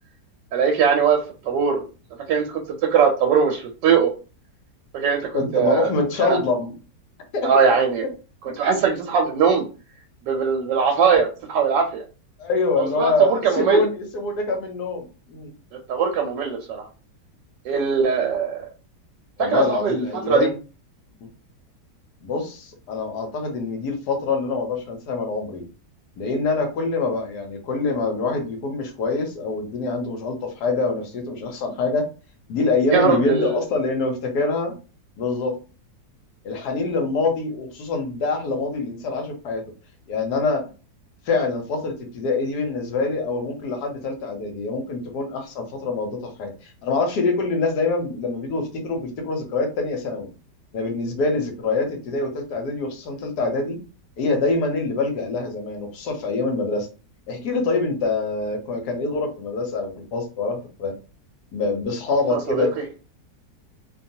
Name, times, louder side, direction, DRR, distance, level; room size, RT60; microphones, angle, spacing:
voice 1, 0.5-1.2 1.4-1.9 2.3-2.5 2.9-4.1 4.9-5.9 6.2-6.4 7.4-8.1 8.6-9.7 10.3-12.0 12.8-13.8 15.9-16.9 17.6-18.7 19.4-20.5 32.9-33.6 62.3-62.7, right 6 dB, 85° right, 1 dB, 1.2 m, -20 dB
voice 2, 5.3-6.7 7.3-7.6 8.5-8.6 12.4-15.5 19.4-20.6 22.2-25.6 26.2-32.1 32.5-34.7 35.2-35.6 36.4-39.6 40.1-40.7 41.3-50.3 50.7-53.8 54.2-56.9 57.3-60.9 61.5-62.7, left 3 dB, 70° left, 4 dB, 1.2 m, -25 dB
2.9 x 2.2 x 2.6 m, 0.34 s
omnidirectional pair, 1.9 m